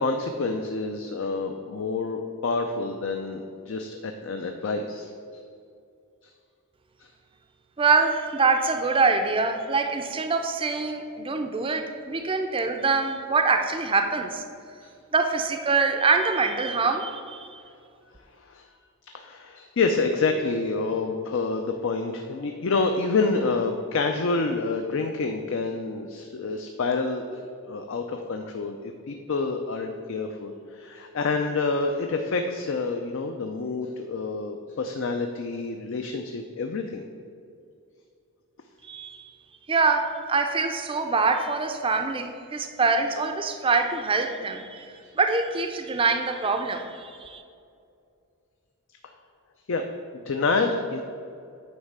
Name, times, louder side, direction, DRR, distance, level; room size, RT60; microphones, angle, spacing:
voice 1, 0.0-5.4 6.2-6.3 7.0-7.1 14.8-14.9 18.4-18.7 19.1-37.0 49.7-49.8 50.1-51.0, left 3 dB, 60° left, 5 dB, 0.4 m, -28 dB
voice 2, 7.8-14.4 15.1-17.6 38.8-39.2 39.7-47.4, right 4 dB, 25° right, 5 dB, 0.4 m, -24 dB
9.4 x 3.2 x 6.5 m, 2.4 s
head